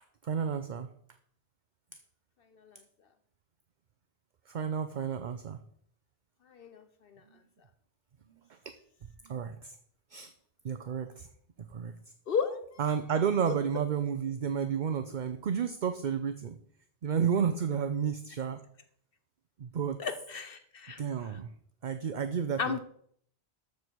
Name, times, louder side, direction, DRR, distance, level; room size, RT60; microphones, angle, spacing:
voice 1, 0.2-0.9 4.5-5.6 8.6-8.7 9.2-9.8 10.1-10.3 10.6-11.3 11.6-11.9 12.8-16.6 17.0-18.6 19.6-20.0 21.0-21.5 21.8-22.8, right 7 dB, 50° right, 9 dB, 0.7 m, -31 dB
voice 2, 6.5-7.2 12.3-12.6 13.5-13.6 20.0-21.0 21.3-21.4 22.6-22.8, left 6 dB, 65° left, 9 dB, 0.9 m, -34 dB
13.0 x 7.0 x 4.6 m, 0.65 s
omnidirectional pair, 1.1 m